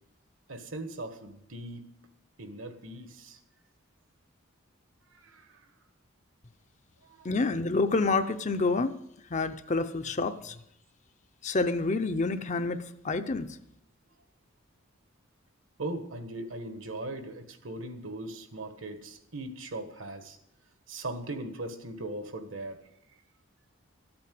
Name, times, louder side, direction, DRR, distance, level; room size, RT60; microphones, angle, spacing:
voice 1, 0.5-1.9 2.4-3.4 5.1-5.7 7.0-7.3 15.8-20.4 20.9-22.8, right 2 dB, 70° right, 8 dB, 1.6 m, -39 dB
voice 2, 7.2-8.9 9.3-10.5 11.4-13.5, left 3 dB, 35° left, 9 dB, 0.6 m, -28 dB
13.5 x 8.7 x 7.7 m, 0.78 s
head